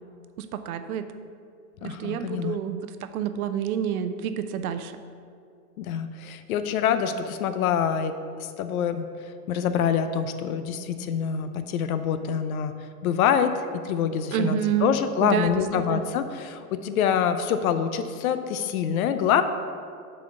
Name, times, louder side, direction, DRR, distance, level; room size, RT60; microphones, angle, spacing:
voice 1, 0.4-1.1 1.8-5.0 14.3-14.9 15.2-16.0, right 9 dB, 70° right, 10 dB, 0.7 m, -28 dB
voice 2, 1.8-2.6 5.8-8.1 8.4-9.1 9.5-12.7 13.0-19.4, left 8 dB, 65° left, 10 dB, 0.7 m, -25 dB
6.5 x 4.2 x 6.6 m, 2.4 s
supercardioid pair, 145°, 45 cm